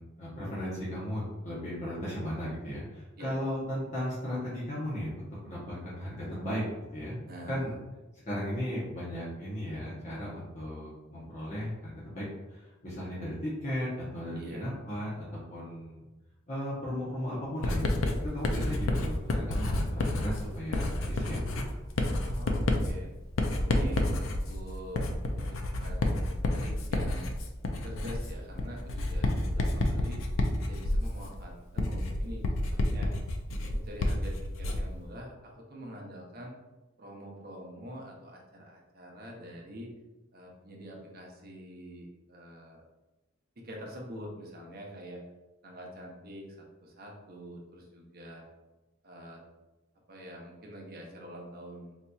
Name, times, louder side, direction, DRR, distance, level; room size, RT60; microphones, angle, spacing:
voice 1, 0.0-6.6 6.9-7.2 7.5-7.7 8.3-16.1 16.5-18.0 18.3-21.8, equal, 35° left, -8 dB, 0.8 m, -36 dB
voice 2, 7.3-7.8 14.4-14.7 22.2-23.1 23.6-25.0 25.3-26.2 26.5-27.3 27.8-30.2 30.6-33.1 33.5-36.5 37.0-39.9 40.3-42.8 43.6-45.2 45.6-46.6 46.8-48.4 49.0-49.4 50.1-51.9, equal, 50° right, -1 dB, 0.7 m, -45 dB
Writing, 17.6-35.0, left 1 dB, 80° left, 0.4 m, -30 dB
4.0 x 2.7 x 2.3 m, 1.1 s
head